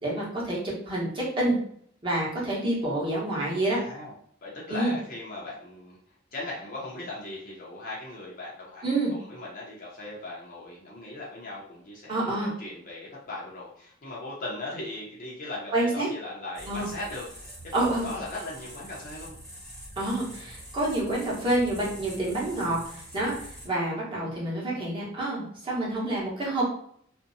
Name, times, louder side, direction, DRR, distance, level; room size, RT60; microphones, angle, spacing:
voice 1, 0.0-0.6 0.9-1.6 2.0-3.8 4.7-4.9 8.8-9.1 12.1-12.5 15.7-16.1 16.7-16.9 17.7-18.1 20.0-26.6, right 1 dB, 25° right, -6 dB, 1.0 m, -28 dB
voice 2, 3.7-4.1 4.4-6.0 6.3-19.4, left 2 dB, 45° left, -5 dB, 0.6 m, -38 dB
sound 1, 16.5-23.7, equal, ahead, 0.9 m, -44 dB
2.6 x 2.1 x 2.6 m, 0.65 s
head